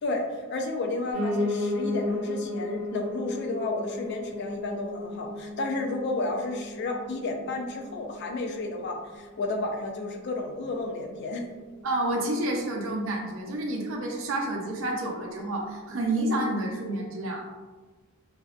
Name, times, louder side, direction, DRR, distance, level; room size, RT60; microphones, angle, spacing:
voice 1, 0.0-11.4, left 2 dB, 50° left, 3 dB, 0.3 m, -32 dB
Piano, 1.1-10.2 10.6-11.8 12.1-12.2 12.4-12.5 12.7-12.8 13.4-13.5, left 2 dB, 70° left, 1.2 m, -34 dB
voice 2, 11.8-17.5, right 1 dB, 60° right, 0 dB, 0.5 m, -29 dB
2.5 x 2.1 x 2.4 m, 1.3 s
head